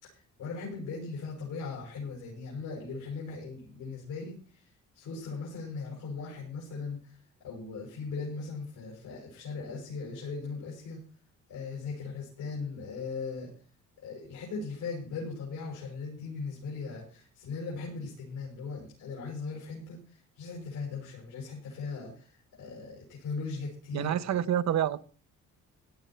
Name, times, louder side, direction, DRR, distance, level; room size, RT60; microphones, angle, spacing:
voice 1, 0.0-7.2 7.4-11.0 11.5-13.5 14.0-24.2, left 4 dB, 85° left, 6.0 m, -39 dB
voice 2, 23.9-25.0, right 10 dB, 60° right, 0.9 m, -27 dB
17.0 x 10.5 x 4.4 m
cardioid pair, 90°, 30 cm